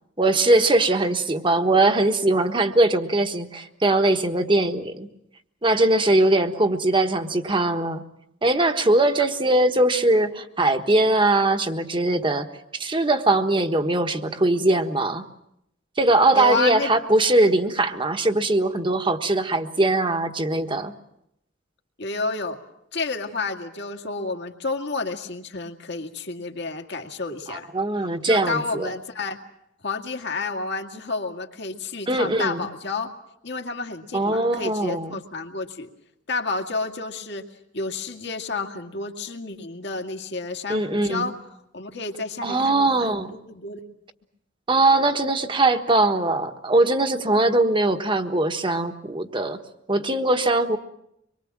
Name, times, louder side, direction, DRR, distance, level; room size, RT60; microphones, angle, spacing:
voice 1, 0.2-5.1 5.6-8.0 8.4-12.5 12.7-15.2 16.0-20.9 27.5-28.9 32.1-32.6 34.1-35.2 40.7-41.3 42.4-43.3 44.7-49.6 49.9-50.8, right 2 dB, 25° right, 7 dB, 1.4 m, -21 dB
voice 2, 16.3-16.9 22.0-22.6 22.9-27.7 28.2-29.4 29.8-33.1 33.4-35.9 36.3-37.4 37.7-41.3 41.7-43.8, left 3 dB, 60° left, 3 dB, 2.2 m, -30 dB
25.0 x 23.0 x 7.4 m, 0.78 s
head